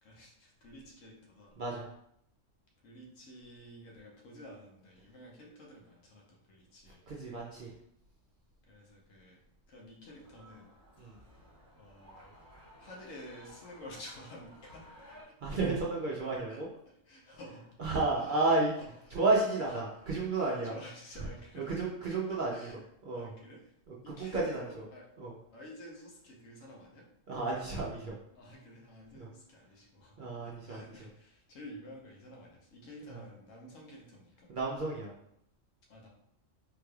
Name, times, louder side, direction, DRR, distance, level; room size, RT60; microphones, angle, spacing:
voice 1, 0.0-1.6 2.8-7.0 8.6-9.4 9.7-10.8 11.8-12.3 12.8-15.3 16.5-17.6 18.2-18.4 18.8-19.2 19.7-19.8 20.4-21.7 22.5-22.8 23.1-23.7 24.0-25.1 25.5-27.1 28.3-34.5 35.9-36.1, left 1 dB, 80° left, -2 dB, 1.2 m, -51 dB
voice 2, 1.6-1.9 7.1-7.7 11.0-11.2 15.4-16.7 17.8-18.7 19.1-20.7 21.5-22.7 23.1-23.3 24.1-24.6 25.2-25.3 27.3-28.2 29.2-29.3 30.2-30.8 34.5-35.1, right 3 dB, 55° right, -4 dB, 0.5 m, -31 dB
sound 1, 10.0-15.2, equal, 45° left, 1.6 m, -56 dB
3.8 x 3.1 x 2.3 m, 0.74 s
omnidirectional pair, 1.3 m